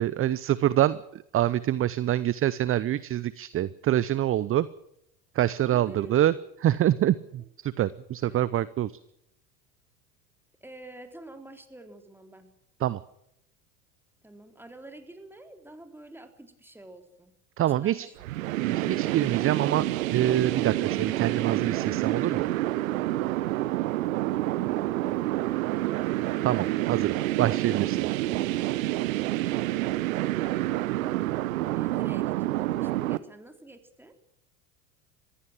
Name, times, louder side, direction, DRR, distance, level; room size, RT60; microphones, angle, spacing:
voice 1, 0.0-4.7 5.3-6.3 6.6-8.9 12.8-13.0 17.6-18.1 18.6-19.8 20.1-22.5 26.4-28.1, right 12 dB, 30° right, 18 dB, 0.7 m, -26 dB
voice 2, 5.7-6.5 8.2-8.5 10.6-12.5 14.2-17.3 17.7-18.7 31.8-34.1, right 2 dB, 5° right, 5 dB, 3.7 m, -48 dB
sound 1, 18.2-33.2, right 16 dB, 70° right, 1.1 m, -28 dB
22.0 x 15.5 x 7.7 m, 0.79 s
hypercardioid pair, 80°, 42 cm